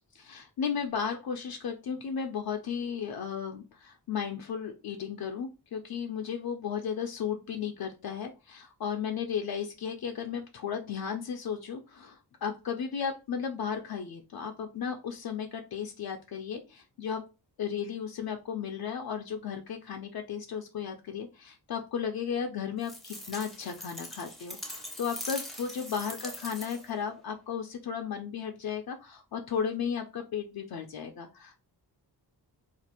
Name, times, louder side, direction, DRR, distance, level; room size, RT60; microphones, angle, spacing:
voice 1, 0.1-17.2 17.6-31.6, left 7 dB, 65° left, 4 dB, 0.5 m, -35 dB
sound 1, 22.8-27.0, left 1 dB, ahead, 0.6 m, -42 dB
2.5 x 2.4 x 4.2 m, 0.29 s
wide cardioid pair, 130°, 39 cm